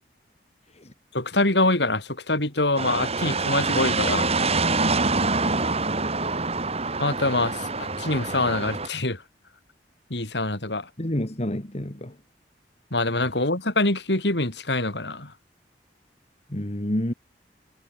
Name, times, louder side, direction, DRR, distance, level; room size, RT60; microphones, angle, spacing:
voice 1, 1.1-4.3 7.0-9.2 10.1-10.9 12.9-15.3, left 2 dB, 70° left, 5.5 m, -25 dB
sound 1, 2.8-8.9, right 3 dB, 35° right, 6.1 m, -25 dB
voice 2, 10.7-12.2 16.5-17.1, left 1 dB, 40° left, 2.4 m, -29 dB
head